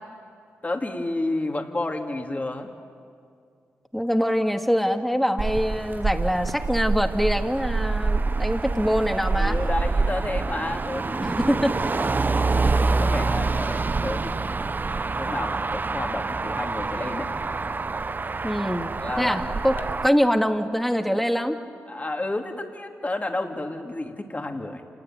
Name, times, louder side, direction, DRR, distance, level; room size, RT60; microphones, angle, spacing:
voice 1, 0.6-2.7 9.4-14.7 15.2-17.3 19.0-19.9 21.9-24.8, left 2 dB, 30° left, 3 dB, 3.1 m, -31 dB
voice 2, 3.9-9.6 11.2-11.7 18.4-19.7 20.0-21.6, equal, 5° left, 5 dB, 2.3 m, -24 dB
Motor vehicle (road), 5.4-20.1, right 3 dB, 35° right, 0.7 m, -26 dB
28.0 x 20.0 x 9.5 m, 2.3 s
supercardioid pair, 45°, 5 cm